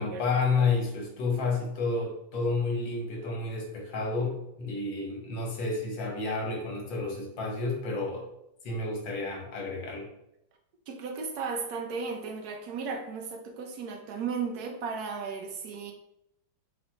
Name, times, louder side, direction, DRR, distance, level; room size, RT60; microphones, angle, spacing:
voice 1, 0.0-8.2 8.6-10.1, left 3 dB, 75° left, 0 dB, 1.8 m, -30 dB
voice 2, 10.9-15.9, right 5 dB, 65° right, 3 dB, 1.1 m, -35 dB
4.3 x 4.2 x 2.8 m, 0.79 s
omnidirectional pair, 2.1 m